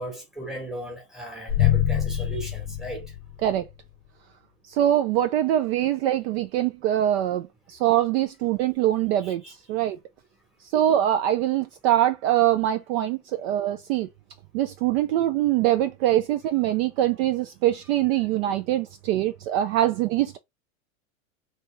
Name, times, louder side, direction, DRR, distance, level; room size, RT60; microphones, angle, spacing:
voice 1, 0.0-3.0 9.2-9.5, right 1 dB, ahead, 1.2 m, -37 dB
sound 1, 1.5-3.7, left 11 dB, 35° left, 0.4 m, -25 dB
voice 2, 4.8-9.4 9.7-10.0 10.7-14.1 14.5-20.4, right 12 dB, 50° right, 0.4 m, -23 dB
3.3 x 2.8 x 3.3 m
supercardioid pair, 150°, 40 cm